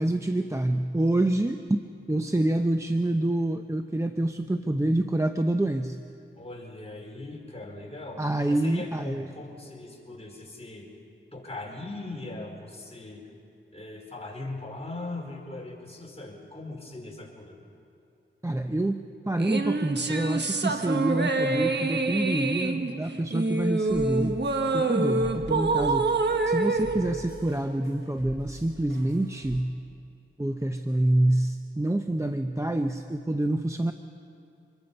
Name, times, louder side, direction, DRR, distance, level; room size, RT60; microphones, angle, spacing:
voice 1, 0.0-1.8 2.1-6.0 8.2-9.3 18.4-24.4 24.7-26.1 26.5-29.8 30.4-33.9, right 1 dB, 15° right, 7 dB, 0.8 m, -27 dB
voice 2, 6.4-10.9 11.3-13.3 13.7-17.6, left 2 dB, 30° left, -1 dB, 4.6 m, -40 dB
sound 1, 19.4-28.0, right 3 dB, 55° right, 1.3 m, -27 dB
sound 2, 23.9-29.6, right 1 dB, 90° right, 3.0 m, -45 dB
25.5 x 22.0 x 5.4 m, 2.5 s
cardioid pair, 60°, 21 cm